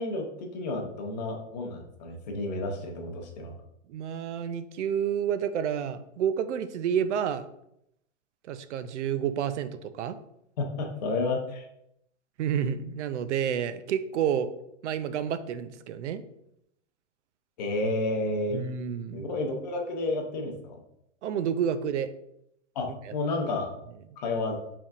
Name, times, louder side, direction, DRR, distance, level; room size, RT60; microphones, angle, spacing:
voice 1, 0.0-3.5 10.6-11.6 17.6-18.7 19.1-20.8 22.8-23.7 24.2-24.6, left 2 dB, 35° left, 2 dB, 0.7 m, -31 dB
voice 2, 3.9-7.5 8.5-10.2 12.4-14.5 14.8-16.2 18.5-19.3 21.2-22.1 23.1-23.2, right 8 dB, 65° right, 12 dB, 0.5 m, -29 dB
5.2 x 3.5 x 2.4 m, 0.78 s
supercardioid pair, 170°, 38 cm